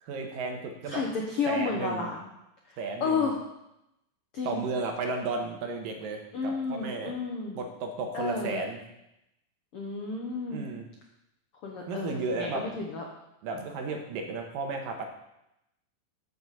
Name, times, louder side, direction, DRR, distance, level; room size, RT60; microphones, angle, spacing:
voice 1, 0.0-1.0 1.5-2.1 2.8-3.3 4.4-7.1 7.6-8.8 10.5-10.9 11.9-12.8 13.4-15.1, right 3 dB, 80° right, 3 dB, 2.8 m, -33 dB
voice 2, 0.9-2.2 3.0-3.4 4.3-4.6 6.3-7.6 8.1-8.6 9.7-10.7 11.6-13.0, left 4 dB, 75° left, 0 dB, 1.3 m, -31 dB
14.0 x 6.8 x 4.1 m, 0.87 s
omnidirectional pair, 4.1 m